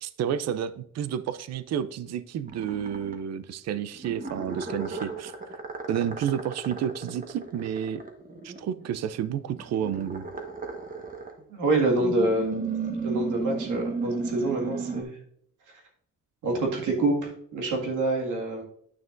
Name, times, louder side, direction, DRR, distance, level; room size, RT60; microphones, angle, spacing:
voice 1, 0.0-5.6 5.9-8.0 8.4-10.3, right 9 dB, 60° right, 14 dB, 0.5 m, -31 dB
sound 1, 2.5-3.2 4.0-8.9 9.5-11.4 12.0-15.0, right 4 dB, 30° right, 1.3 m, -34 dB
voice 2, 11.5-12.6 13.0-15.2 16.4-18.6, right 2 dB, 80° right, 0 dB, 2.0 m, -26 dB
9.4 x 6.0 x 2.5 m, 0.66 s
cardioid pair, 90°, 30 cm